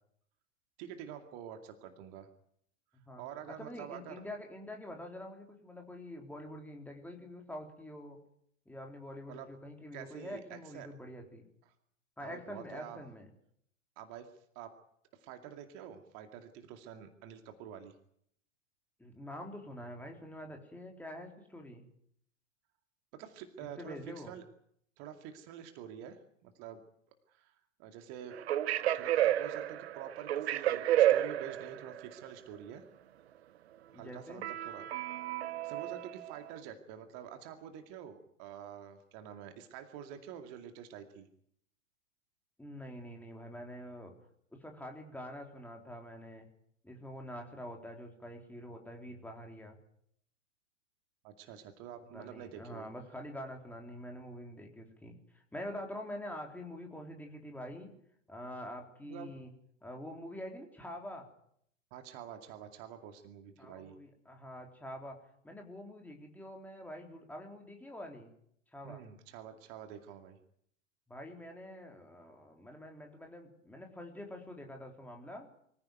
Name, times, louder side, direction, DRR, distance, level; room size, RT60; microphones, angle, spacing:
voice 1, 0.8-2.3 3.2-4.2 9.3-9.5 9.9-10.9 12.2-13.0 14.0-14.8 15.1-17.9 23.1-24.4 25.0-26.8 27.3-28.4 28.9-32.8 33.9-34.9 35.3-35.4 35.6-41.3 51.2-52.9 59.0-59.3 61.9-64.0 68.8-70.4, right 9 dB, 35° right, 6 dB, 2.4 m, -47 dB
voice 2, 2.9-8.2 8.7-11.5 12.2-13.3 19.0-21.9 23.8-24.3 33.9-34.5 42.6-44.1 44.5-46.5 46.8-49.8 52.1-57.9 58.3-59.5 59.8-61.3 63.6-65.2 65.4-68.3 68.7-69.0 71.1-75.5, left 1 dB, 5° left, 2 dB, 3.8 m, -46 dB
sound 1, 28.3-32.0 34.4-36.5, right 12 dB, 55° right, 1.2 m, -31 dB
24.0 x 15.5 x 9.5 m, 0.70 s
figure-of-eight pair, 100°, 39 cm